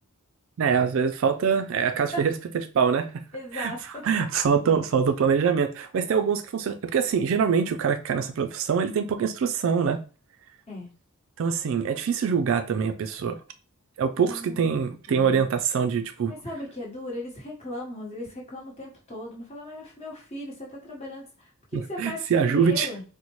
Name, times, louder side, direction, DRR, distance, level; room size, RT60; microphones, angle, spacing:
voice 1, 0.6-2.3 2.7-3.1 3.5-3.7 4.0-10.0 11.4-13.4 14.0-16.3 21.7-22.9, right 6 dB, 60° right, 0.3 m, -24 dB
voice 2, 3.3-4.0 10.7-10.9 14.1-14.6 15.1-15.4 16.3-23.0, left 1 dB, 30° left, 1.2 m, -37 dB
4.1 x 2.1 x 3.0 m
head